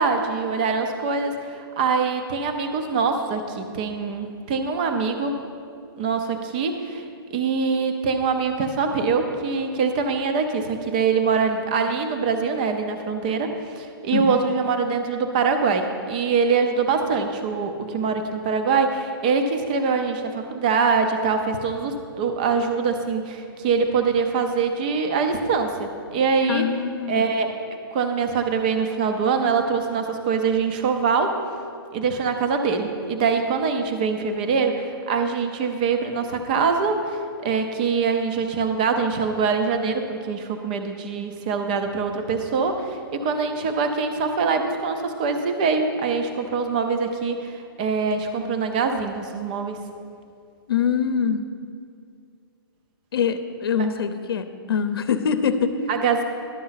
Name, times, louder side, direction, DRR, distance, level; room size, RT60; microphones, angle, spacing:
voice 1, 0.0-5.4 6.0-7.0 7.3-26.7 27.1-27.5 27.9-31.4 31.9-49.8 53.8-53.9 55.9-56.2, right 5 dB, 20° right, 6 dB, 0.5 m, -24 dB
voice 2, 26.5-27.3 50.7-51.4 53.1-55.7, left 7 dB, 70° left, 10 dB, 0.7 m, -24 dB
11.5 x 6.7 x 5.7 m, 2.4 s
hypercardioid pair, 180°, 13 cm